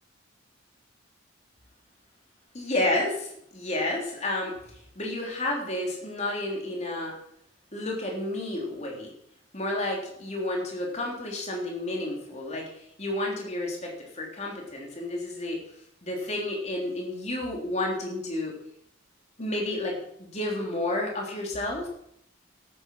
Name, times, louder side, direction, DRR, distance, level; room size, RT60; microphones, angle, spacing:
voice 1, 2.5-7.1 7.7-9.1 9.5-15.6 16.0-18.5 19.4-21.9, left 1 dB, 35° left, -1 dB, 3.6 m, -31 dB
13.0 x 10.0 x 6.4 m, 0.72 s
head